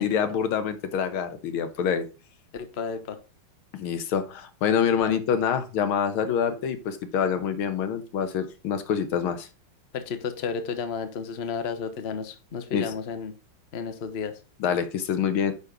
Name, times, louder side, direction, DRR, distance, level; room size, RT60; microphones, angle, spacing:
voice 1, 0.0-2.0 3.7-9.5 12.7-12.9 14.6-15.5, left 7 dB, 90° left, 9 dB, 1.8 m, -26 dB
voice 2, 2.5-3.2 5.0-5.1 9.9-13.3 13.7-14.4, left 5 dB, 40° left, 8 dB, 0.9 m, -32 dB
9.6 x 4.2 x 5.0 m, 0.32 s
omnidirectional pair, 2.3 m